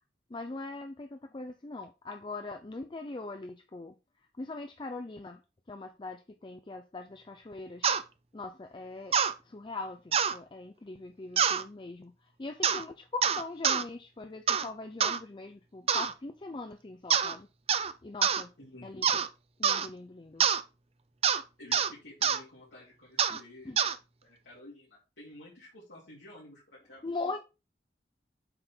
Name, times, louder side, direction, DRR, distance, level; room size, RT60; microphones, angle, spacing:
voice 1, 0.3-3.9 4.4-5.4 5.7-7.9 8.3-9.2 9.4-12.1 12.4-17.5 18.0-18.5 18.8-19.0 19.6-20.5 23.3-23.4 23.6-23.8 27.0-27.4, left 3 dB, 30° left, 0.5 m, -41 dB
sound 1, 7.8-8.0 9.1-9.3 10.1-10.4 11.4-11.6 12.6-12.8 13.2-13.8 14.5-14.7 15.0-15.2 15.9-16.1 17.1-17.4 17.7-17.9 18.2-18.4 19.0-19.3 19.6-19.9 20.4-20.6 21.2-21.4 21.7-21.9 22.2-22.4 23.2-23.4 23.8-24.0, right 7 dB, 35° right, 0.5 m, -26 dB
voice 2, 18.6-19.0 21.6-23.7 24.2-27.4, left 1 dB, 90° left, 2.9 m, -51 dB
7.7 x 3.7 x 4.4 m
head